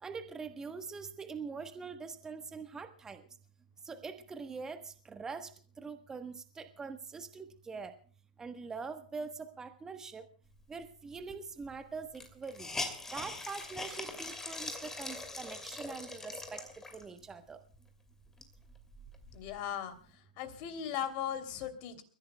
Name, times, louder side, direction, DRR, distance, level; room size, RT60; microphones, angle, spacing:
voice 1, 0.0-3.2 3.8-5.5 5.8-7.9 8.4-10.2 10.7-12.7 13.1-16.6 16.9-17.6, right 5 dB, 10° right, 9 dB, 1.2 m, -43 dB
Hiss, 11.3-11.4 11.6-11.7 12.1-17.2 17.7-17.8 18.2-19.6, left 3 dB, 10° left, 2.7 m, -42 dB
voice 2, 19.3-19.9 20.4-22.0, left 9 dB, 40° left, 8 dB, 3.0 m, -37 dB
30.0 x 15.5 x 2.3 m, 0.44 s
figure-of-eight pair, 115°, 5 cm